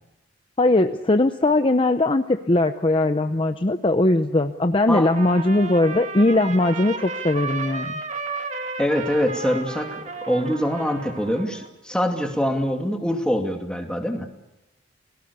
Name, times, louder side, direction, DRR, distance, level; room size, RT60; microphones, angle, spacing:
voice 1, 0.6-8.0, left 2 dB, 30° left, 8 dB, 0.7 m, -20 dB
Trumpet, 4.9-11.7, right 4 dB, 35° right, 1.8 m, -33 dB
voice 2, 8.8-14.3, equal, 5° left, 3 dB, 2.4 m, -24 dB
29.0 x 18.5 x 6.9 m, 0.99 s
head